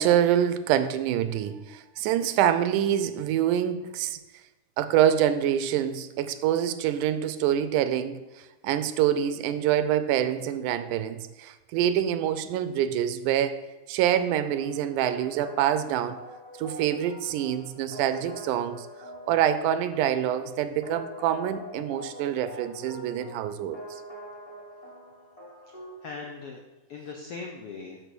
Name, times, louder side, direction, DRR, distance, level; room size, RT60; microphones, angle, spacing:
voice 1, 0.0-4.2 4.8-13.6 13.9-16.2 16.6-18.9 19.3-23.8, right 10 dB, 80° right, 11 dB, 2.0 m, -26 dB
sound 1, 14.5-26.1, equal, 15° left, 1.4 m, -44 dB
voice 2, 25.6-26.6 26.9-28.0, left 4 dB, 80° left, 1 dB, 1.3 m, -40 dB
6.8 x 6.3 x 6.1 m, 1.2 s
omnidirectional pair, 3.6 m